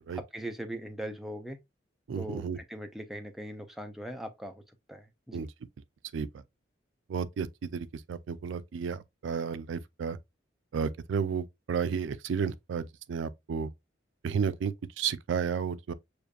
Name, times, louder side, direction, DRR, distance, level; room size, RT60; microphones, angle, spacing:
voice 1, 0.1-1.6 2.2-4.6 4.9-5.5, equal, ahead, 0.5 m, -40 dB
voice 2, 2.1-2.6 5.3-5.5 6.1-6.3 7.1-7.5 7.7-10.2 10.7-13.7 14.2-15.9, right 6 dB, 85° right, 0.4 m, -32 dB
6.5 x 2.5 x 2.3 m
head